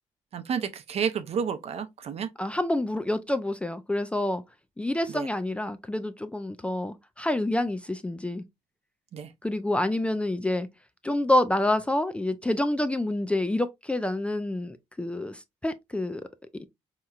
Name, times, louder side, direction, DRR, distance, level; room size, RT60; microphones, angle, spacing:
voice 1, 0.3-2.3 5.1-5.3 9.1-9.3, right 7 dB, 60° right, 0.6 m, -30 dB
voice 2, 2.4-4.4 4.8-8.4 9.4-10.7 11.0-16.2 16.6-16.7, left 1 dB, 10° left, 0.3 m, -27 dB
4.3 x 2.9 x 2.3 m
cardioid pair, 110°, 12 cm